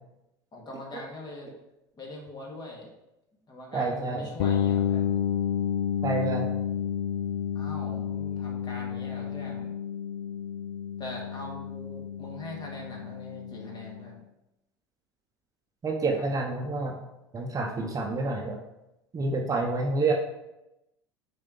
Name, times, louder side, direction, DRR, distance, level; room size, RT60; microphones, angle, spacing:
voice 1, 0.5-1.5 2.0-2.9 3.5-5.1 7.5-9.7 11.0-14.2 16.1-16.2, left 1 dB, 30° left, -1 dB, 2.0 m, -42 dB
voice 2, 3.7-4.3 6.0-6.5 15.8-16.9 17.3-18.6 19.1-20.1, right 3 dB, 25° right, 2 dB, 0.9 m, -28 dB
sound 1, 4.4-14.1, left 9 dB, 75° left, 0.4 m, -31 dB
6.5 x 4.3 x 3.8 m, 0.91 s
hypercardioid pair, 80°, 13 cm